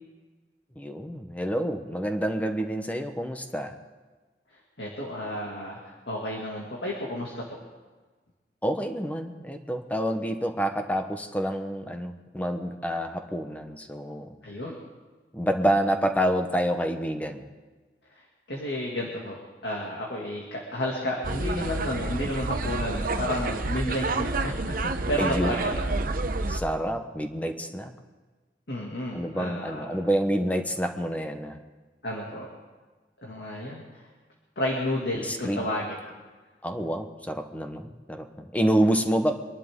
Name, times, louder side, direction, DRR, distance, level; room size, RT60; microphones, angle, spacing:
voice 1, 0.8-3.7 8.6-14.3 15.3-17.4 25.2-25.6 26.5-27.9 29.1-31.6 35.2-35.7 36.6-39.3, equal, 10° left, 6 dB, 1.0 m, -28 dB
voice 2, 4.8-7.6 14.4-14.8 18.1-18.2 18.5-24.7 25.1-26.0 28.7-30.0 32.0-32.5 33.2-34.0 34.6-36.0, left 1 dB, 70° left, -3 dB, 2.4 m, -32 dB
sound 1, 21.2-26.6, right 2 dB, 55° right, 0.9 m, -29 dB
25.0 x 11.5 x 3.7 m, 1.3 s
head